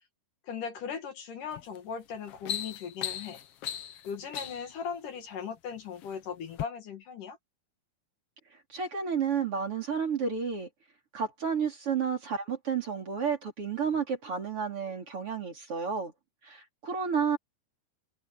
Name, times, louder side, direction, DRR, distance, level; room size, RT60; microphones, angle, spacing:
voice 1, 0.5-3.4 4.1-7.4, left 7 dB, 60° left, 3.3 m, -38 dB
sound 1, 1.5-1.8 2.1-4.8 5.6-6.1 6.5-6.7, left 10 dB, 85° left, 1.3 m, -37 dB
voice 2, 8.7-10.7 11.1-16.1 16.4-17.4, right 6 dB, 35° right, 4.2 m, -31 dB
omnidirectional pair, 4.5 m